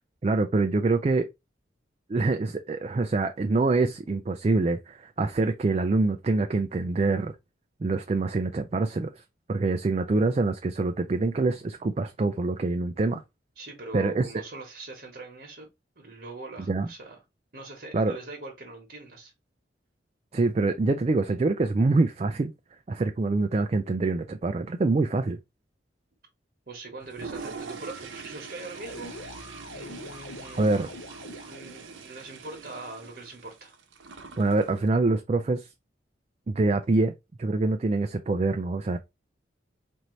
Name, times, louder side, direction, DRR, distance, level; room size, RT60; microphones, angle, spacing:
voice 1, 0.2-1.3 2.1-7.3 7.8-9.1 9.5-13.2 13.9-14.3 16.7-16.9 17.9-18.2 20.3-22.5 22.9-25.4 30.6-30.9 34.4-35.7 36.5-37.1 37.4-39.0, right 3 dB, 35° right, 0.3 m, -25 dB
voice 2, 13.6-15.7 16.0-17.2 17.5-19.3 26.7-29.1 29.7-30.8 31.2-33.7, right 2 dB, 55° right, 1.1 m, -42 dB
Toilet flush, 27.0-34.9, right 5 dB, 85° right, 0.7 m, -43 dB
sound 1, 28.7-31.9, left 1 dB, 90° left, 0.7 m, -43 dB
4.3 x 2.6 x 3.1 m
head